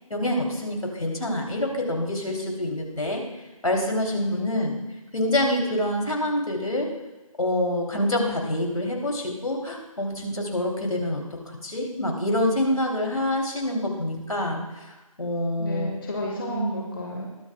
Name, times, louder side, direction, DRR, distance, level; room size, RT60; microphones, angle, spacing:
voice 1, 0.1-3.2 3.6-4.8 5.1-6.9 7.4-14.9 15.2-15.9 16.4-16.8, left 1 dB, 70° left, 0 dB, 3.1 m, -26 dB
voice 2, 4.2-4.7 15.6-17.2, left 1 dB, 40° left, -1 dB, 1.4 m, -32 dB
21.5 x 8.5 x 2.3 m, 1.1 s
figure-of-eight pair, 160°, 18 cm